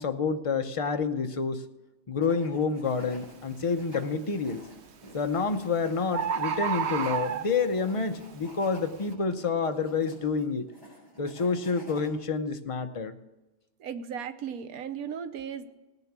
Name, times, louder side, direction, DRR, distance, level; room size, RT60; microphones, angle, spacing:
voice 1, 0.0-1.6 2.1-4.6 5.1-10.7 11.2-13.1, left 5 dB, 40° left, 8 dB, 0.5 m, -28 dB
sound 1, 2.2-3.3 3.7-12.1, equal, 15° right, 5.2 m, -51 dB
Bird, 2.9-3.1 3.6-4.1 5.1-5.2 5.5-5.6 5.8-5.9 6.1-7.8 8.4-8.5, right 7 dB, 60° right, 0.9 m, -30 dB
voice 2, 13.8-15.7, right 7 dB, 85° right, 11 dB, 1.3 m, -36 dB
18.0 x 6.8 x 6.0 m, 1.1 s
omnidirectional pair, 1.5 m